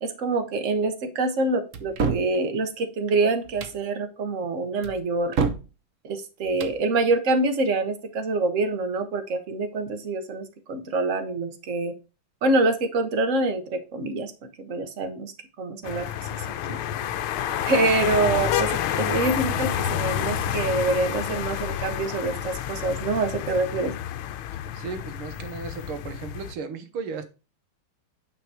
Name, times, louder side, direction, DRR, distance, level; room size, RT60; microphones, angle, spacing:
voice 1, 0.0-5.4 6.0-11.9 12.4-14.3 14.7-15.3 15.6-16.3 16.7-16.8 17.6-18.7 18.9-23.9, right 3 dB, 45° right, 7 dB, 1.3 m, -26 dB
sound 1, 1.7-2.3 3.4-3.8 4.8-5.7 6.4-6.8, right 5 dB, 60° right, 0.8 m, -27 dB
sound 2, 15.8-26.5, left 10 dB, 80° left, 1.4 m, -29 dB
voice 2, 24.7-27.2, right 5 dB, 85° right, 9 dB, 2.0 m, -35 dB
9.2 x 4.5 x 4.8 m, 0.32 s
omnidirectional pair, 2.3 m